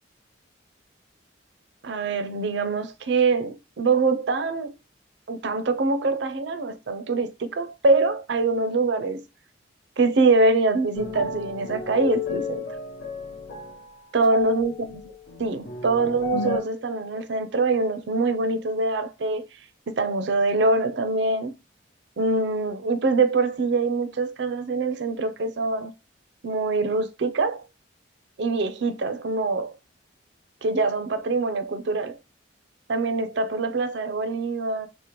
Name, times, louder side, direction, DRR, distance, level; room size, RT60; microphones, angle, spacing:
voice 1, 1.8-4.8 5.3-9.2 10.0-12.6 14.1-15.1 15.4-19.5 19.9-21.5 22.2-25.9 26.4-27.6 28.4-29.7 30.6-32.2 32.9-34.9, right 3 dB, 65° right, 0.4 m, -24 dB
sound 1, 11.0-16.6, left 5 dB, 75° left, 0.8 m, -33 dB
5.0 x 2.1 x 2.9 m
head